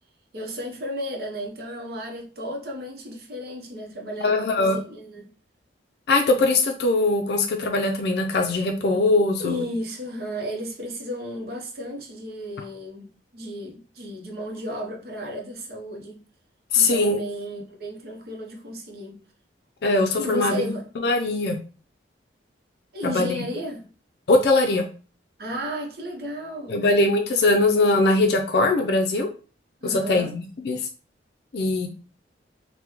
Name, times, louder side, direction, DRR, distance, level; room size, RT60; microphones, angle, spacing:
voice 1, 0.3-5.3 9.4-16.2 16.7-19.2 20.2-20.9 22.9-23.9 25.4-26.9 29.8-30.3, equal, 55° right, 0.7 m, -33 dB
voice 2, 4.2-4.8 6.1-9.7 16.7-17.2 19.8-21.6 23.0-23.4 24.3-24.8 26.7-29.3 29.8-30.9 31.5-31.9, left 2 dB, 60° left, 0.4 m, -21 dB
2.9 x 2.1 x 3.5 m
head